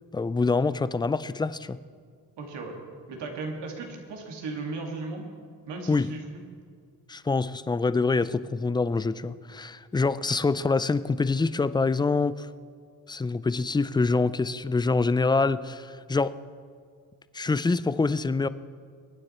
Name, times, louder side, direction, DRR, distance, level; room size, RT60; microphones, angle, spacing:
voice 1, 0.1-1.8 5.9-6.1 7.1-12.5 13.1-16.3 17.3-18.5, left 3 dB, 10° left, 16 dB, 0.3 m, -25 dB
voice 2, 2.4-2.8 3.1-5.3 5.7-6.2, right 3 dB, 85° right, 1 dB, 2.4 m, -36 dB
22.5 x 9.7 x 4.3 m, 2.1 s
cardioid pair, 85°, 41 cm